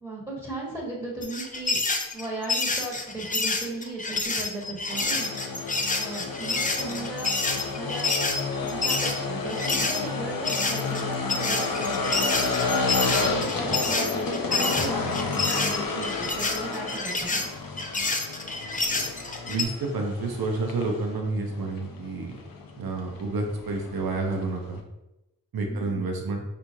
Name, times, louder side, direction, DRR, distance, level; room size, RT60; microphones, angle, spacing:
voice 1, 0.0-1.8 2.1-5.3 6.0-7.3 7.7-8.2 8.6-12.6 13.1-17.5 25.6-26.0, right 2 dB, 10° right, -5 dB, 1.3 m, -36 dB
sound 1, 1.2-10.0 10.4-19.7, left 3 dB, 20° left, 0.5 m, -28 dB
sound 2, 4.9-24.8, left 4 dB, 65° left, 0.6 m, -31 dB
voice 2, 19.5-22.4 22.8-24.8 25.5-26.4, right 3 dB, 70° right, 1 dB, 0.7 m, -29 dB
4.4 x 2.6 x 2.6 m, 0.94 s
cardioid pair, 45°, 37 cm